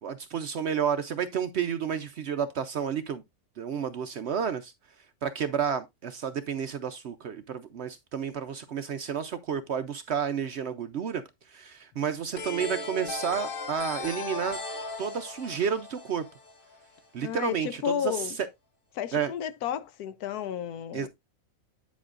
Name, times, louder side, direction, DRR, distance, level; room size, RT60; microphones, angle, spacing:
voice 1, 0.0-3.2 3.6-4.7 5.2-11.2 11.5-14.6 15.0-16.2 17.1-18.3 19.1-19.3 20.9-21.1, right 7 dB, 60° right, 0.7 m, -31 dB
sound 1, 12.4-17.0, left 3 dB, 40° left, 1.1 m, -37 dB
voice 2, 17.2-18.4 18.9-21.1, left 9 dB, 90° left, 1.2 m, -32 dB
9.3 x 7.2 x 2.4 m
omnidirectional pair, 1.6 m